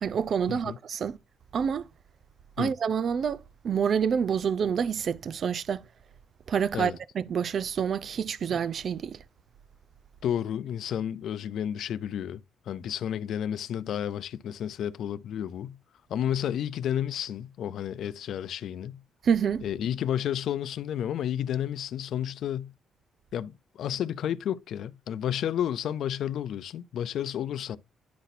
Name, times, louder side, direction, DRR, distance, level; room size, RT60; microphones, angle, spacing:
voice 1, 0.0-1.2 1.5-1.9 2.6-5.9 6.5-9.2 19.2-19.6, right 7 dB, 55° right, 0.5 m, -27 dB
voice 2, 10.2-15.8 16.1-19.0 19.6-22.7 23.3-27.8, left 10 dB, 70° left, 0.5 m, -31 dB
10.5 x 4.1 x 2.6 m
cardioid pair, 90°, 0 cm